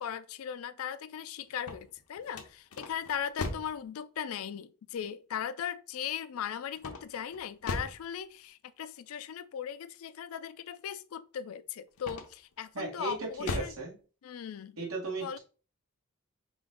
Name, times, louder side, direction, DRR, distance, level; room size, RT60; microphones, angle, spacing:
voice 1, 0.0-13.7 14.2-14.8 15.2-15.4, left 8 dB, 75° left, 0.4 m, -38 dB
sound 1, 1.5-3.8 6.8-8.1 12.0-12.5 13.0-13.8, left 2 dB, 90° left, 0.7 m, -38 dB
voice 2, 12.7-14.0 14.8-15.4, right 3 dB, 75° right, 1.8 m, -36 dB
4.9 x 2.5 x 3.8 m
head